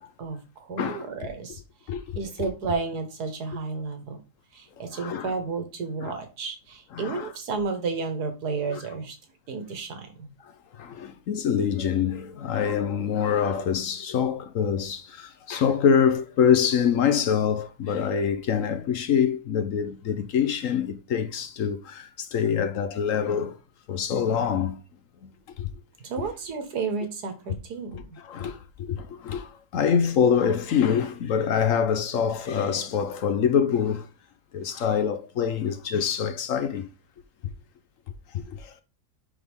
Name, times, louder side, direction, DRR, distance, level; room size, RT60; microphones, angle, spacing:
voice 1, 0.2-1.6 2.2-4.2 4.5-9.2 9.5-10.3 26.0-28.2, right 4 dB, 85° right, 1.8 m, -32 dB
voice 2, 1.9-2.5 4.9-5.3 6.0-6.1 7.0-7.3 8.7-8.8 10.7-23.6 23.9-24.8 25.2-25.3 25.6-25.7 28.2-34.1 34.5-36.9 38.3-38.8, left 7 dB, 60° left, 1.0 m, -25 dB
10.0 x 3.7 x 3.6 m
omnidirectional pair, 1.7 m